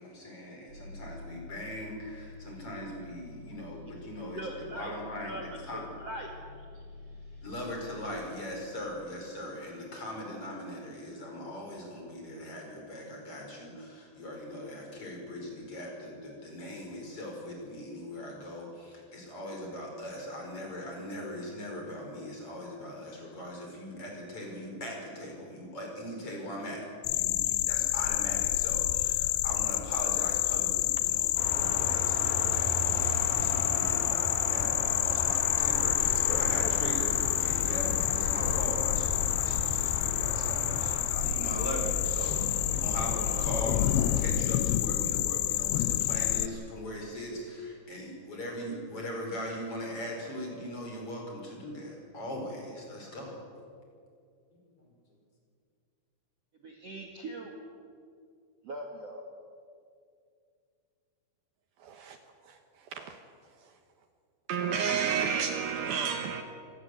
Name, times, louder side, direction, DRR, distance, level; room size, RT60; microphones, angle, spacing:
voice 1, 0.0-5.4 5.7-5.8 7.4-53.4 54.8-54.9, left 1 dB, 30° left, 0 dB, 5.6 m, -40 dB
sound 1, 0.7-8.2, left 3 dB, 85° right, 8.4 m, -48 dB
voice 2, 4.4-4.9 5.2-5.4 5.7-6.3 56.6-57.5 58.6-59.2, right 1 dB, 45° right, 1 dB, 2.4 m, -40 dB
sound 2, 27.0-46.5, left 15 dB, 75° left, 2.4 m, -28 dB
sound 3, 31.4-44.3, left 1 dB, 55° left, 5.1 m, -35 dB
voice 3, 61.8-62.2 62.5-62.6 62.9-63.2 64.5-66.4, right 7 dB, 70° right, 6 dB, 2.7 m, -30 dB
26.5 x 18.0 x 7.9 m, 2.3 s
omnidirectional pair, 5.0 m